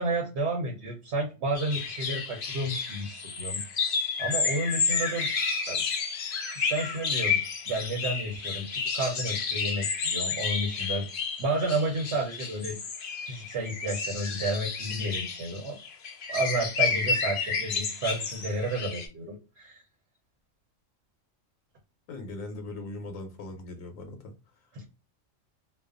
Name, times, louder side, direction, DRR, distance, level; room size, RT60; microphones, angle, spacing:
voice 1, 0.0-3.6 4.2-5.3 5.7-5.8 6.5-11.1 11.4-12.8 13.2-15.8 16.3-19.8 24.7-24.9, right 2 dB, 60° right, 0 dB, 0.9 m, -31 dB
sound 1, 1.5-19.1, left 5 dB, 55° left, 0.6 m, -31 dB
voice 2, 22.1-24.3, left 2 dB, 80° left, 5 dB, 1.0 m, -39 dB
2.4 x 2.2 x 2.3 m, 0.31 s
omnidirectional pair, 1.4 m